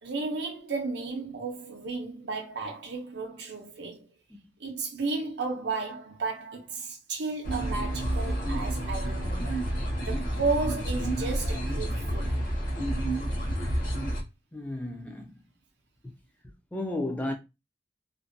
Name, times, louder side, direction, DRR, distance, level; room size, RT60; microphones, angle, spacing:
voice 1, 0.0-4.1 4.6-9.6 10.1-12.4, right 4 dB, 65° right, 0.5 m, -33 dB
sound 1, 7.4-14.2, right 1 dB, 50° left, 0.7 m, -29 dB
voice 2, 14.5-15.4 16.0-16.1 16.7-17.3, left 1 dB, 10° left, 0.4 m, -33 dB
2.5 x 2.2 x 2.5 m
head